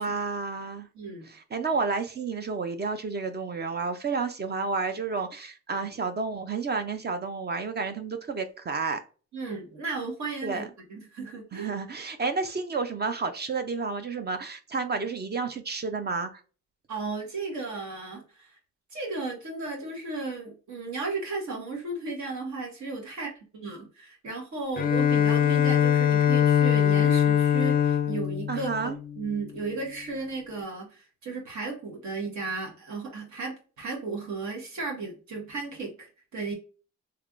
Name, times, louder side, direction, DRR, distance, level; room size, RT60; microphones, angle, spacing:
voice 1, 0.0-0.9 1.3-9.0 10.4-10.6 11.5-16.4 28.5-29.0, right 4 dB, 35° right, 0.5 m, -31 dB
voice 2, 0.9-1.3 9.3-11.7 16.9-18.6 18.9-36.5, right 3 dB, 70° right, 1.5 m, -35 dB
Bowed string instrument, 24.8-29.5, left 9 dB, 30° left, 0.4 m, -23 dB
3.3 x 3.3 x 2.5 m
cardioid pair, 115°, 30 cm